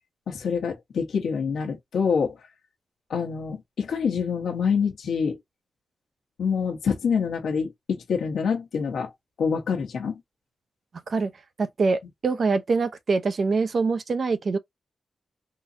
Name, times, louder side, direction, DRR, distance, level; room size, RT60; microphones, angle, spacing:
voice 1, 0.3-2.4 3.1-5.4 6.4-9.1 9.4-10.2, left 6 dB, 90° left, 1.0 m, -26 dB
voice 2, 11.6-14.6, right 4 dB, 50° right, 0.6 m, -24 dB
3.8 x 2.6 x 2.7 m
wide cardioid pair, 125°, 0 cm